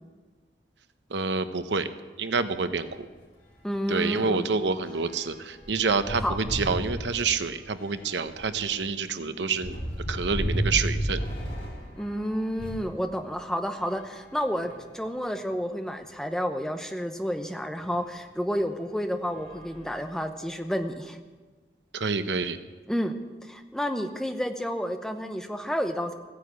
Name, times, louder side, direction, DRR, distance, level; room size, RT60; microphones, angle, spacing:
voice 1, 1.1-1.9 2.2-3.1 3.9-9.8 10.1-11.2 21.9-22.6, right 4 dB, 85° right, 11 dB, 0.8 m, -27 dB
sound 1, 3.0-3.1 3.5-12.9 13.7-15.0 15.7-15.8 16.0-16.1 17.8-18.0 18.6-18.8 19.2-20.5, equal, 45° left, 4.0 m, -35 dB
voice 2, 3.6-4.5 6.2-6.4 12.0-21.2 22.9-23.1 23.4-26.1, equal, 5° left, 6 dB, 0.8 m, -30 dB
15.0 x 9.9 x 8.2 m, 1.3 s
head